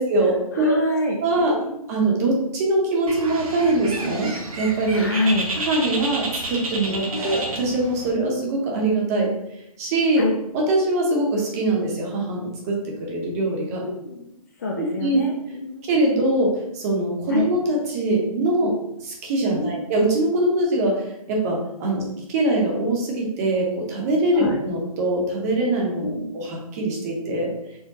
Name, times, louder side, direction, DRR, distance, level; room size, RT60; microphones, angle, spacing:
voice 1, 0.0-0.8 1.2-1.5 1.9-4.3 4.6-5.1 5.6-9.3 9.8-10.3 10.5-13.8 14.8-15.2 15.9-18.7 19.0-22.0 22.3-27.8, right 2 dB, 25° right, -1 dB, 0.7 m, -23 dB
voice 2, 0.5-1.7 4.9-5.5 7.1-7.3 10.2-10.3 13.8-14.2 14.6-15.8 17.3-17.4 19.5-19.9 21.9-22.1 24.3-24.6 26.0-26.3, left 1 dB, 30° left, 0 dB, 0.3 m, -26 dB
Bird, 3.1-8.1, right 2 dB, 65° right, 0.9 m, -31 dB
4.5 x 2.1 x 2.7 m, 0.82 s
hypercardioid pair, 150°, 20 cm